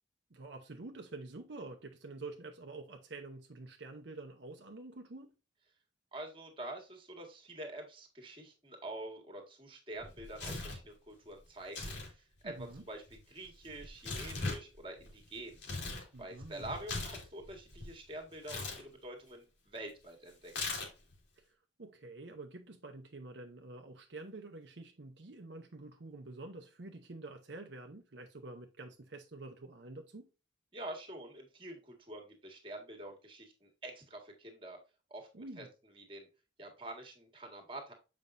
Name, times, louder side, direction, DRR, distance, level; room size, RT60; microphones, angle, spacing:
voice 1, 0.3-5.3 12.4-12.8 16.1-16.7 21.4-30.3 35.3-35.7, right 2 dB, 65° right, 0.8 m, -48 dB
voice 2, 6.1-12.5 12.9-15.6 16.2-20.5 30.7-34.8 35.1-35.6 35.9-36.3 36.6-37.9, right 1 dB, 25° right, 1.7 m, -46 dB
Tearing, 10.0-10.9 11.6-12.1 12.4-16.1 16.4-17.9 18.4-18.8 20.5-21.1, left 3 dB, 65° left, 2.3 m, -40 dB
7.3 x 5.2 x 2.6 m
head